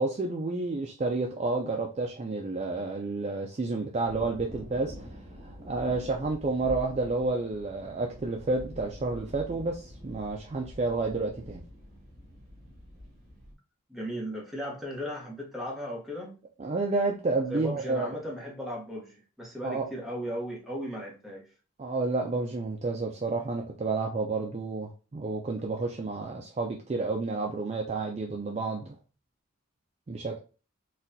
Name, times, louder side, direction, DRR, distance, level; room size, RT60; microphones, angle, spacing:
voice 1, 0.0-5.2 5.7-11.6 16.6-18.1 19.6-19.9 21.8-28.9 30.1-30.4, right 3 dB, 30° right, 0.3 m, -30 dB
sound 1, 4.0-13.5, equal, 60° right, 1.6 m, -46 dB
voice 2, 13.9-16.4 17.5-21.5, equal, ahead, 0.9 m, -36 dB
4.0 x 2.3 x 2.6 m
head